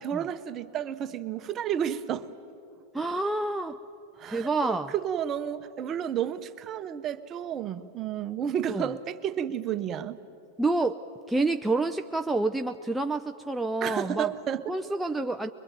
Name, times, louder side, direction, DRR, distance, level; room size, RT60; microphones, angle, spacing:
voice 1, 0.0-2.3 4.2-10.2 13.8-14.7, right 9 dB, 35° right, 10 dB, 1.0 m, -31 dB
voice 2, 2.9-3.8 4.3-4.9 8.7-8.9 10.6-11.0 11.3-14.3 14.7-15.5, right 2 dB, 5° right, 5 dB, 0.6 m, -28 dB
23.0 x 21.5 x 9.2 m, 2.6 s
hypercardioid pair, 110°, 0 cm